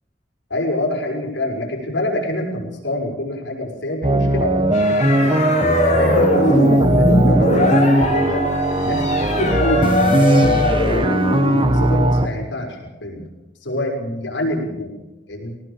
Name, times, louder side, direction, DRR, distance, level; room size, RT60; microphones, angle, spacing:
voice 1, 0.5-5.5 5.8-8.4 8.8-13.3 13.6-14.9 15.3-15.5, left 1 dB, 75° left, 1 dB, 6.3 m, -26 dB
sound 1, 4.0-12.3, right 1 dB, 30° right, 1.3 m, -18 dB
sound 2, 4.7-12.1, left 1 dB, 40° left, 4.9 m, -20 dB
22.0 x 17.5 x 7.3 m, 0.99 s
head